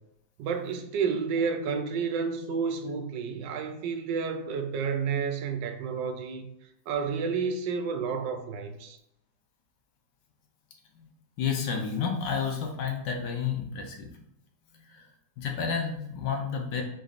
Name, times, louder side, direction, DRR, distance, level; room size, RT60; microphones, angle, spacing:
voice 1, 0.4-6.5 6.9-9.0, right 5 dB, 80° right, 1.2 m, -30 dB
voice 2, 11.4-14.1 14.7-15.1 15.4-16.8, left 6 dB, 75° left, 1.2 m, -31 dB
4.0 x 3.2 x 2.4 m
omnidirectional pair, 2.0 m